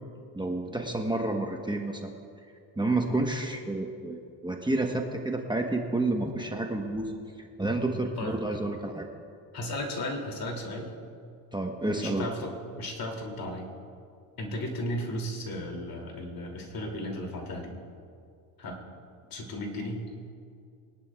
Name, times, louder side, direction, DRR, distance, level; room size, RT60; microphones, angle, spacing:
voice 1, 0.3-2.1 2.8-7.1 7.4-9.0 11.5-12.3, right 2 dB, 10° right, 2 dB, 1.1 m, -30 dB
voice 2, 8.2-8.6 9.5-10.9 12.0-13.7 14.4-17.8 18.6-18.8 19.3-20.1, left 1 dB, 50° left, 0 dB, 2.9 m, -35 dB
23.0 x 11.0 x 2.4 m, 2.4 s
supercardioid pair, 75°, 44 cm